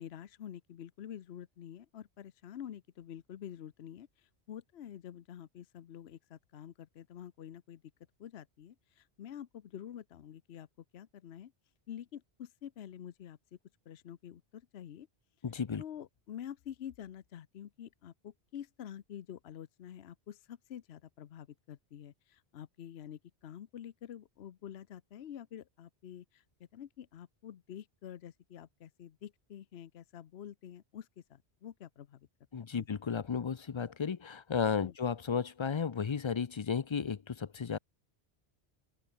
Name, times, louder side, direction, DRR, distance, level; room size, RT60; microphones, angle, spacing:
voice 1, 0.0-7.8 8.2-10.7 10.9-11.5 11.9-13.6 13.9-15.1 15.8-32.3 32.7-33.1 34.8-34.9, left 10 dB, 75° left, 1.0 m, -48 dB
voice 2, 15.4-15.8 32.5-37.8, left 6 dB, 40° left, 0.4 m, -34 dB
open air
omnidirectional pair, 1.1 m